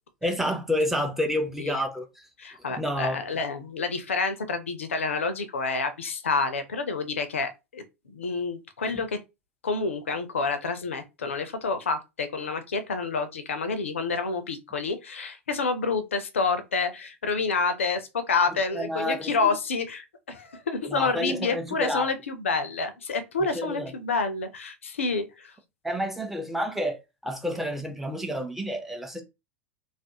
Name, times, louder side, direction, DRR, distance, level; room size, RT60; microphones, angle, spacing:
voice 1, 0.2-2.0 2.8-3.2 18.7-19.6 20.9-22.1 23.5-23.9 25.8-27.0 27.2-29.2, equal, 5° right, 0.5 m, -29 dB
voice 2, 2.4-9.2 9.6-25.5, left 4 dB, 70° left, 0.4 m, -28 dB
2.4 x 2.0 x 2.8 m
figure-of-eight pair, 90°, 7 cm